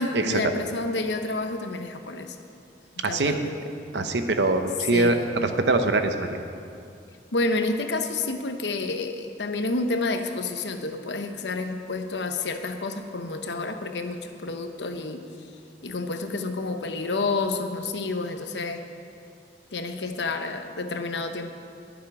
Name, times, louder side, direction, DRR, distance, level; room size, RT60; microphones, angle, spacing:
voice 1, 0.0-2.4 3.1-3.7 4.9-5.5 7.3-15.2 15.8-18.8 19.7-21.5, left 3 dB, 80° left, 7 dB, 0.9 m, -29 dB
voice 2, 3.0-3.3 3.9-6.4, right 2 dB, 75° right, 7 dB, 0.8 m, -23 dB
21.0 x 7.4 x 4.8 m, 2.4 s
head